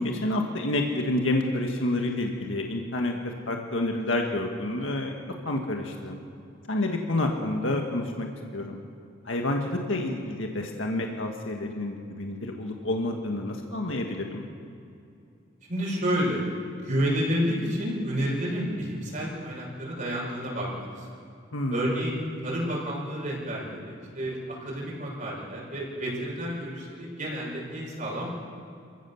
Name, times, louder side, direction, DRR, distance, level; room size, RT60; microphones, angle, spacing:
voice 1, 0.0-5.1 5.5-6.2 6.7-8.3 8.5-8.8 9.3-14.5 21.5-21.8, left 1 dB, 75° left, 2 dB, 1.8 m, -29 dB
voice 2, 15.7-16.4 16.7-21.1 21.7-28.3, equal, 45° right, -4 dB, 6.3 m, -30 dB
28.5 x 16.0 x 7.2 m, 2.6 s
head